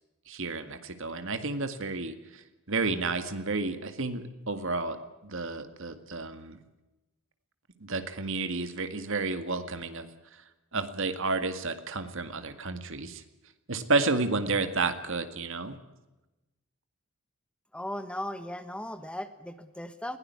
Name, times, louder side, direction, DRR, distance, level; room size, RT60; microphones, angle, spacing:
voice 1, 0.3-2.1 2.7-5.0 5.2-6.6 7.8-10.1 10.7-13.2 13.7-15.8, right 3 dB, 60° right, 10 dB, 2.1 m, -31 dB
voice 2, 17.7-20.2, left 1 dB, 5° left, 11 dB, 1.1 m, -37 dB
21.0 x 17.0 x 9.6 m, 1.0 s
head